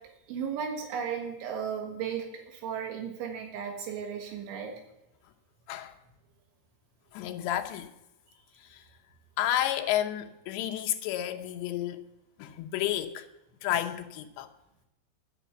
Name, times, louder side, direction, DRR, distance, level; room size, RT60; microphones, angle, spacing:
voice 1, 0.3-4.7, right 7 dB, 85° right, 4.0 m, -35 dB
voice 2, 7.1-7.9 8.6-8.8 9.4-12.0 12.4-13.3 13.6-14.5, left 12 dB, 80° left, 3.1 m, -31 dB
11.0 x 9.9 x 7.1 m
omnidirectional pair, 5.3 m